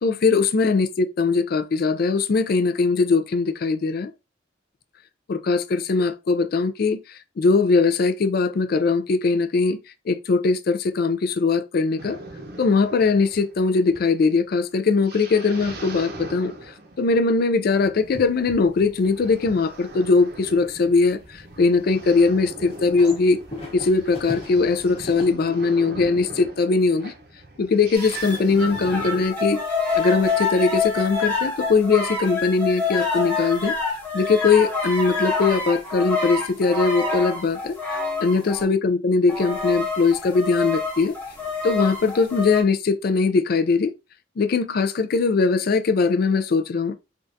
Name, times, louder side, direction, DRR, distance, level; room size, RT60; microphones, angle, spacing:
voice 1, 0.0-4.1 5.3-7.0 7.4-9.8 10.1-12.2 12.6-16.5 17.0-23.4 23.7-27.1 27.6-29.6 30.0-33.7 34.1-37.8 38.2-41.2 41.6-43.9 44.4-46.9, left 4 dB, 50° left, 0.4 m, -20 dB
sound 1, 12.0-29.3, right 2 dB, 55° right, 0.7 m, -41 dB
sound 2, 18.0-25.2, left 1 dB, 30° left, 1.0 m, -42 dB
sound 3, 27.9-38.6 39.3-42.6, left 4 dB, 10° left, 0.9 m, -27 dB
3.4 x 2.4 x 2.6 m
head